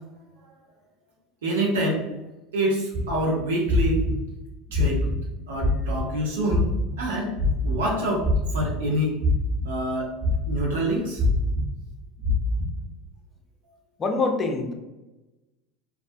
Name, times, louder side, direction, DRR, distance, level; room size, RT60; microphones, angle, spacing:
voice 1, 1.4-2.1 2.5-4.0 4.7-5.1 5.5-7.3 7.6-9.2 9.6-10.1 10.5-11.2, right 1 dB, 85° right, -2 dB, 0.5 m, -26 dB
sound 1, 2.9-3.1 3.7-4.1 4.7-5.2 5.6-6.0 6.5-6.9 7.3-7.8 8.2-8.9 9.2-9.6 10.2-10.6 11.2-11.6 12.2-12.7, left 2 dB, 45° right, 1.0 m, -23 dB
voice 2, 14.0-14.7, left 3 dB, 30° left, 4 dB, 0.5 m, -24 dB
2.4 x 2.1 x 2.6 m, 1.0 s
hypercardioid pair, 90°, 0 cm